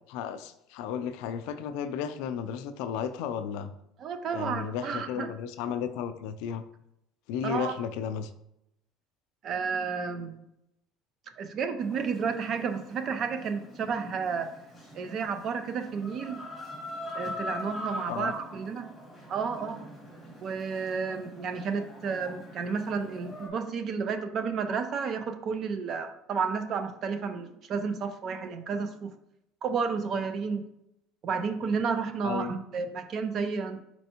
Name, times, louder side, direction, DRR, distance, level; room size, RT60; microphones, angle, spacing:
voice 1, 0.0-3.7 4.3-6.6 7.3-8.3 18.1-18.3 32.2-32.5, left 8 dB, 70° left, 11 dB, 0.3 m, -34 dB
voice 2, 4.0-5.3 7.4-7.8 9.4-10.5 11.4-14.5 14.9-16.4 17.1-18.9 19.3-19.8 20.4-29.1 29.6-30.6 31.2-33.8, right 5 dB, 35° right, 9 dB, 0.4 m, -31 dB
Chicken rooster, 11.8-23.5, left 1 dB, ahead, 1.5 m, -43 dB
4.4 x 4.1 x 2.8 m, 0.80 s
cardioid pair, 175°, 0 cm